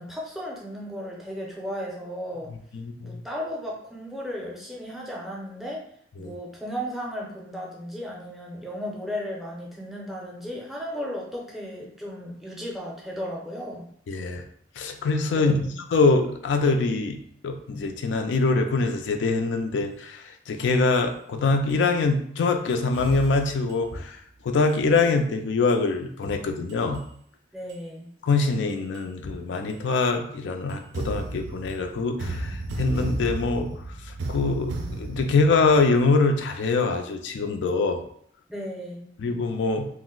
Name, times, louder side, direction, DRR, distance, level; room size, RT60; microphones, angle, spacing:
voice 1, 0.0-2.5 3.0-5.8 6.2-13.9 15.3-15.7 27.5-28.1 38.5-39.1, equal, ahead, -3 dB, 0.5 m, -35 dB
voice 2, 2.7-3.2 6.2-6.3 14.1-14.4 14.8-17.2 17.4-27.0 28.2-33.7 34.0-38.0 39.2-39.9, left 3 dB, 80° left, 6 dB, 0.4 m, -24 dB
sound 1, 20.7-21.0 21.7-21.8 22.7-24.0 24.7-25.0 25.7-25.8 26.7-27.0 27.7-27.8 28.7-29.0 29.7-29.8 30.7-36.5, right 2 dB, 70° right, 0.4 m, -34 dB
2.5 x 2.0 x 3.7 m, 0.65 s
head